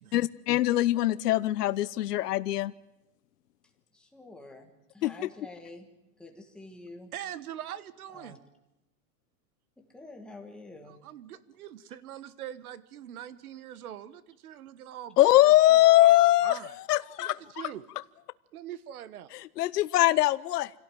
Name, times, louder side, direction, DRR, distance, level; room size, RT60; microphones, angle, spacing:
voice 1, 0.1-2.7 5.0-5.3 15.2-17.7 19.3-20.7, left 15 dB, 75° left, 15 dB, 0.9 m, -22 dB
voice 2, 3.9-5.9 6.2-7.1 8.1-8.4 9.9-11.0, left 2 dB, ahead, 2 dB, 1.5 m, -47 dB
voice 3, 7.1-8.4 10.9-15.2 15.4-15.5 16.4-16.7 17.2-17.8 18.5-19.3, right 11 dB, 65° right, 17 dB, 1.6 m, -42 dB
26.0 x 17.0 x 9.2 m, 0.96 s
supercardioid pair, 180°, 47 cm